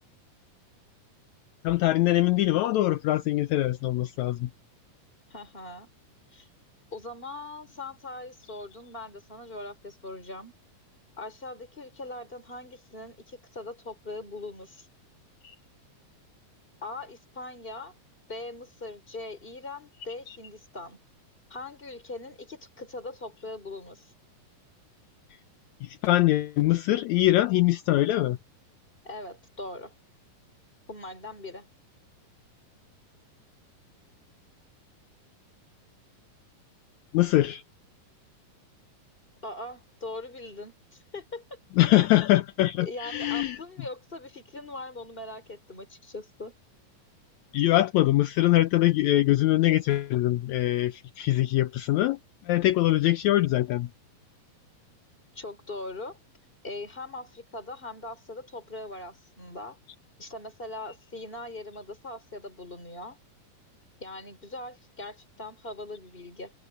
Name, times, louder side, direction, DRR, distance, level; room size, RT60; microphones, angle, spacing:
voice 1, 1.6-4.5 15.4-15.5 25.8-28.4 37.1-37.6 41.8-43.6 47.5-52.2 52.5-53.9, left 16 dB, 75° left, 1.7 m, -23 dB
voice 2, 5.3-5.9 6.3-6.5 6.9-10.5 11.2-14.9 16.8-17.9 18.3-21.0 21.5-24.1 29.0-29.9 30.9-31.7 39.4-41.6 42.8-46.5 55.3-56.2 56.6-59.8 60.2-63.2 64.0-66.5, left 2 dB, 15° left, 4.4 m, -41 dB
omnidirectional pair, 4.0 m